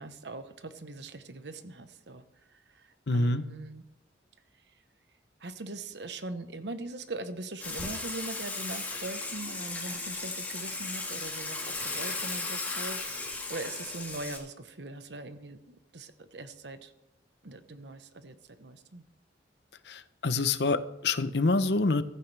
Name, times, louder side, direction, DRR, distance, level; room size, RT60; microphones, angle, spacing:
voice 1, 0.0-2.2 2.5-3.8 5.4-16.9 17.4-19.0, right 2 dB, 75° right, 10 dB, 1.1 m, -41 dB
voice 2, 3.1-3.4 19.9-22.0, left 3 dB, 70° left, 12 dB, 0.8 m, -26 dB
Water / Water tap faucet / Sink (filling or washing), 7.6-14.4, left 3 dB, 10° left, 2.9 m, -36 dB
16.0 x 14.0 x 3.4 m, 0.94 s
head